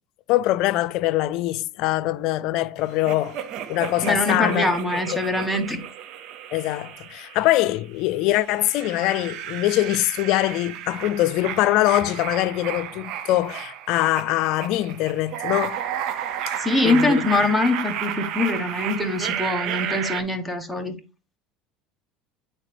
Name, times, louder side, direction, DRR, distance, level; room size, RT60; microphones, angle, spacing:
voice 1, 0.3-3.4 3.7-4.7 5.1-5.2 6.5-15.8 16.8-17.2, left 16 dB, 65° left, 0.5 m, -23 dB
sound 1, 3.1-7.8 8.3-20.2, right 10 dB, 60° right, 0.7 m, -32 dB
voice 2, 4.0-5.8 16.6-21.0, left 2 dB, ahead, 1.2 m, -23 dB
8.9 x 4.2 x 3.3 m
supercardioid pair, 110°, 0 cm